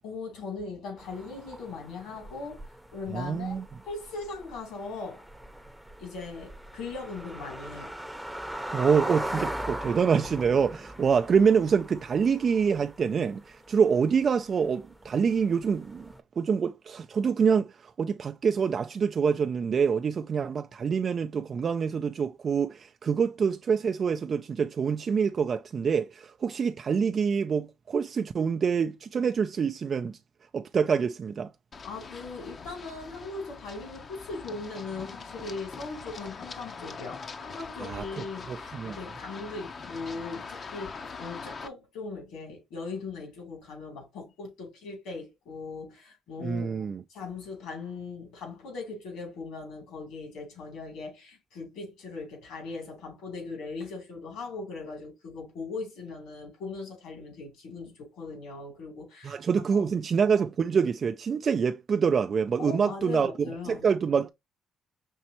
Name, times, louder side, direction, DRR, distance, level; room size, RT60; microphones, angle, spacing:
voice 1, 0.0-2.6 2.9-3.6 3.9-5.2 6.0-7.9 31.8-59.4 59.7-59.9 62.6-63.9, left 4 dB, 80° left, 2.7 m, -39 dB
sound 1, 1.0-16.2, right 1 dB, 5° right, 0.7 m, -40 dB
voice 2, 3.1-3.6 8.7-16.1 16.4-30.2 30.5-31.5 37.8-39.0 46.4-47.0 59.2-63.3 63.7-64.3, right 6 dB, 50° right, 0.3 m, -26 dB
Run, 31.7-41.7, left 4 dB, 45° left, 0.6 m, -42 dB
5.3 x 3.1 x 2.8 m
supercardioid pair, 65°, 0 cm